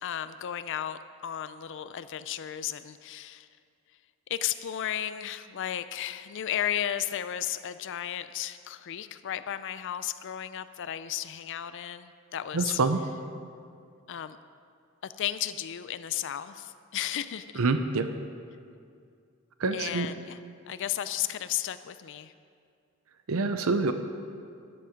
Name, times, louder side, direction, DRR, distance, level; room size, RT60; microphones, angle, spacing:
voice 1, 0.0-3.5 4.3-12.8 14.1-14.4 15.0-17.5 19.7-20.4 20.7-22.3, left 11 dB, 60° left, 13 dB, 0.4 m, -34 dB
voice 2, 12.5-13.0 17.6-18.1 19.6-20.1 23.3-23.9, right 3 dB, 75° right, 9 dB, 0.7 m, -26 dB
13.0 x 11.0 x 5.1 m, 2.3 s
head